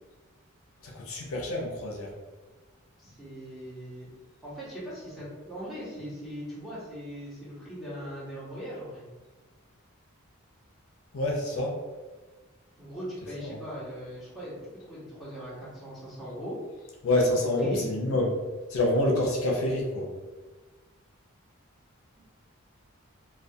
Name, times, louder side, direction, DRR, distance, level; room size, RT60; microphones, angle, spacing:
voice 1, 0.8-2.1 11.1-11.8 13.4-13.6 17.0-18.3 18.7-20.1, left 1 dB, 70° left, -1 dB, 0.5 m, -27 dB
voice 2, 3.0-4.1 4.4-9.0 12.8-14.6 14.9-16.6 17.6-17.8, equal, ahead, -10 dB, 0.8 m, -40 dB
2.3 x 2.2 x 2.6 m, 1.3 s
head